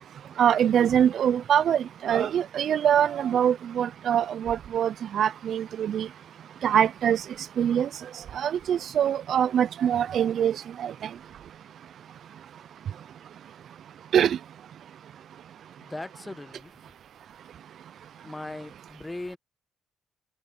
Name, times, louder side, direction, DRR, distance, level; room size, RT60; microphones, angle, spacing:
voice 1, 0.4-6.1 6.6-7.2 7.6-7.9 8.3-10.9 14.1-14.4, right 9 dB, 65° right, 0.3 m, -23 dB
voice 2, 15.8-16.9 18.2-19.4, left 2 dB, 15° left, 1.4 m, -39 dB
cardioid pair, 90°, 0 cm